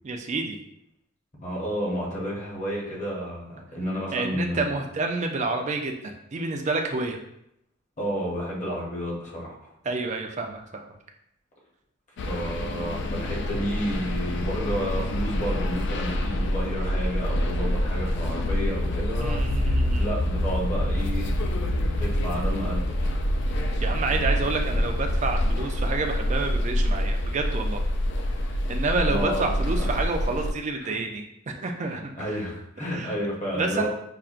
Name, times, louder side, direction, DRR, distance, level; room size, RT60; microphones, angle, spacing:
voice 1, 0.0-0.6 4.1-7.2 9.8-11.0 19.2-20.1 23.8-27.8 28.7-32.3 32.9-33.1 33.5-33.9, right 3 dB, 35° right, 3 dB, 0.4 m, -29 dB
voice 2, 1.4-4.7 8.0-9.7 12.3-21.3 22.0-23.2 29.1-29.9 30.8-31.0 31.9-33.9, equal, 35° left, -4 dB, 1.0 m, -31 dB
sound 1, 12.2-30.5, equal, 55° left, 0.3 m, -26 dB
5.5 x 2.1 x 2.4 m, 0.77 s
head